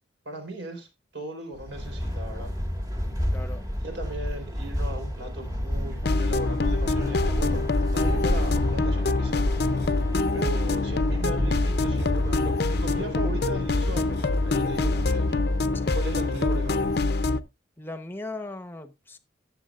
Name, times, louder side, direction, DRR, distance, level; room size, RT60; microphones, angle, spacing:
voice 1, 0.2-2.5 3.3-7.6 7.9-9.7 10.3-15.3 15.9-16.9, right 1 dB, 70° right, 4.3 m, -38 dB
sound 1, 1.6-17.3, equal, 20° right, 1.7 m, -31 dB
voice 2, 3.3-3.6 10.3-10.5 14.7-14.9 15.7-16.0 17.8-19.2, left 2 dB, 10° left, 0.9 m, -39 dB
sound 2, 6.0-17.4, left 3 dB, 55° left, 0.6 m, -25 dB
Thunder / Rain, 7.0-15.2, left 1 dB, 55° right, 3.9 m, -39 dB
18.0 x 7.2 x 2.4 m
head